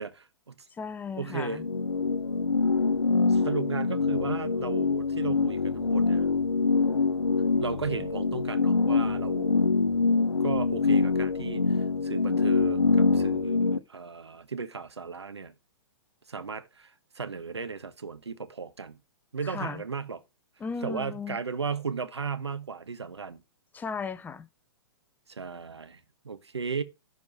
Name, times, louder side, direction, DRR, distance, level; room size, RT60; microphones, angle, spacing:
voice 1, 0.0-0.5 1.2-1.6 3.3-6.3 7.6-9.6 10.4-15.5 16.3-19.0 19.3-20.2 20.8-23.4 25.3-26.8, right 5 dB, 85° right, 1.1 m, -35 dB
voice 2, 0.7-1.6 19.4-19.8 20.6-21.4 23.7-24.5, left 5 dB, 10° left, 0.7 m, -36 dB
sound 1, 1.3-13.8, left 4 dB, 90° left, 0.7 m, -25 dB
11.0 x 4.8 x 6.0 m
hypercardioid pair, 120°, 14 cm